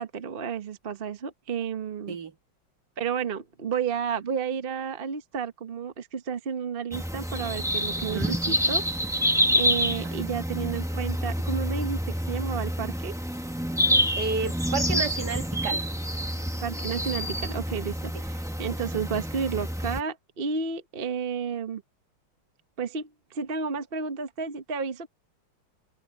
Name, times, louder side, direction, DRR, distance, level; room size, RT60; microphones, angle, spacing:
voice 1, 0.0-2.2 3.0-8.8 9.5-13.1 16.6-21.8 22.8-25.1, right 6 dB, 35° right, 1.0 m, -32 dB
sound 1, 6.9-20.0, equal, ahead, 0.9 m, -28 dB
voice 2, 8.0-8.4 10.0-10.1 14.2-15.8, right 5 dB, 60° right, 1.9 m, -31 dB
omnidirectional pair, 2.2 m